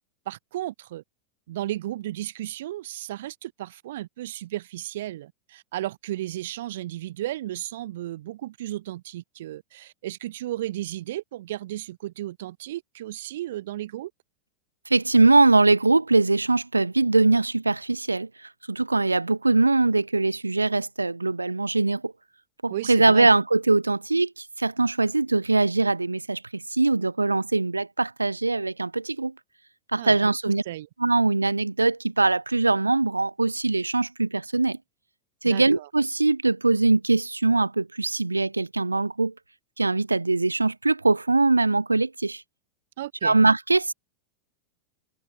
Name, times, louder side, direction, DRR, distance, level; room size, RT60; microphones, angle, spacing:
voice 1, 0.3-1.0 1.5-14.1 22.7-23.3 30.0-30.3 30.6-30.9 35.4-35.9 43.0-43.4, right 14 dB, 55° right, 2.6 m, -34 dB
voice 2, 14.9-18.3 18.7-22.1 22.6-29.3 29.9-30.6 31.0-34.8 35.4-39.3 39.8-42.4 43.2-43.9, right 3 dB, 80° right, 0.4 m, -22 dB
figure-of-eight pair, 90°, 0 cm